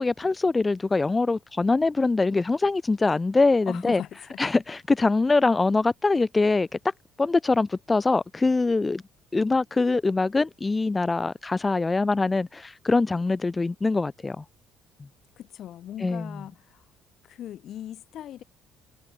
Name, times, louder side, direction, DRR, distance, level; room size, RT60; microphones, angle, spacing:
voice 1, 0.0-4.0 4.4-6.7 7.2-9.0 9.3-14.4 15.0-15.1 16.0-16.4, left 3 dB, 20° left, 0.3 m, -23 dB
voice 2, 3.7-4.4 15.4-16.9 17.2-18.4, left 11 dB, 50° left, 2.0 m, -39 dB
figure-of-eight pair, 50°, 0 cm